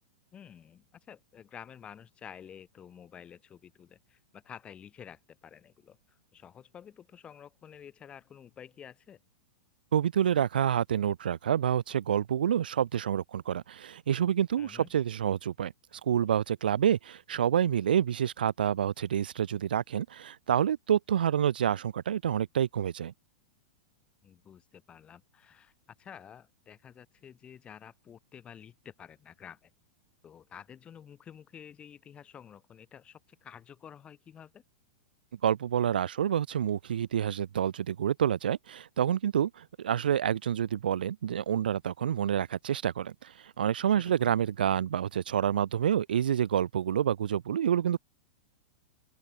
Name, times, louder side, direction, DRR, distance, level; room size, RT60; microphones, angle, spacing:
voice 1, 0.3-9.2 14.6-14.9 24.2-25.7 26.0-29.7 30.2-34.6 43.9-44.3, left 8 dB, 20° left, 3.0 m, -50 dB
voice 2, 9.9-15.7 16.0-23.1 35.4-48.0, right 9 dB, 85° right, 0.5 m, -28 dB
open air
hypercardioid pair, 125°, 5 cm